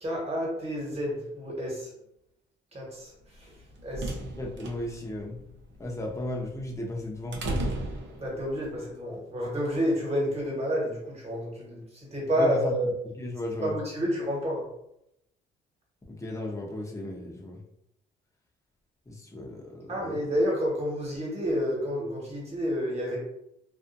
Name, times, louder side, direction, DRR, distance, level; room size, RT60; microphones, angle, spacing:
voice 1, 0.0-1.9 2.7-3.1 3.4-3.5 3.8-4.2 8.2-12.9 13.6-14.7 19.9-23.2, equal, 30° right, -3 dB, 1.3 m, -29 dB
sound 1, 3.4-8.7, right 1 dB, 70° right, 0.6 m, -36 dB
voice 2, 4.4-5.4 5.8-7.4 12.3-12.7 13.2-13.7 16.1-17.6 19.1-20.2, left 1 dB, 15° left, -1 dB, 0.7 m, -35 dB
2.5 x 2.4 x 2.5 m, 0.79 s
cardioid pair, 90°, 20 cm